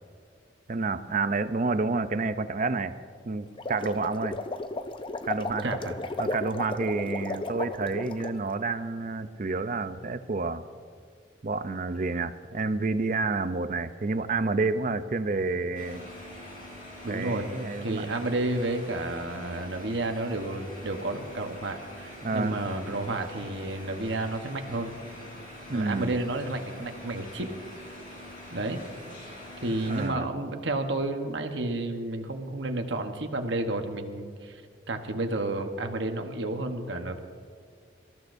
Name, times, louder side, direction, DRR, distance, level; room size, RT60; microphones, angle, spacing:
voice 1, 0.7-2.9 3.2-4.4 5.3-5.7 6.2-10.6 11.4-16.0 17.1-18.0 22.2-22.6 25.7-26.1 29.9-30.3, right 3 dB, 40° right, 11 dB, 0.5 m, -29 dB
sound 1, 3.5-8.4, left 2 dB, 25° left, 0.5 m, -34 dB
voice 2, 5.6-6.0 17.0-17.5 17.8-24.9 25.7-27.5 28.5-28.8 29.6-34.6 34.9-37.2, right 2 dB, 75° right, 5 dB, 1.1 m, -31 dB
sound 2, 15.7-30.1, left 1 dB, 50° left, 4.3 m, -44 dB
24.5 x 14.0 x 2.6 m, 2.1 s
head